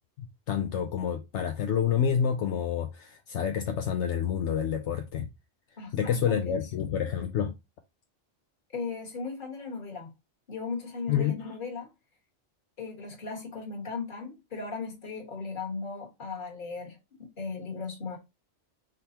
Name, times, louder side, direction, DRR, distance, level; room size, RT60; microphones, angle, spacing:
voice 1, 0.2-5.2 5.9-7.5 11.1-11.5, left 8 dB, 75° left, 0.9 m, -28 dB
voice 2, 5.8-6.6 8.7-10.1 10.5-11.9 12.8-18.2, left 4 dB, 45° left, 1.5 m, -37 dB
5.3 x 3.4 x 2.8 m
omnidirectional pair, 1.2 m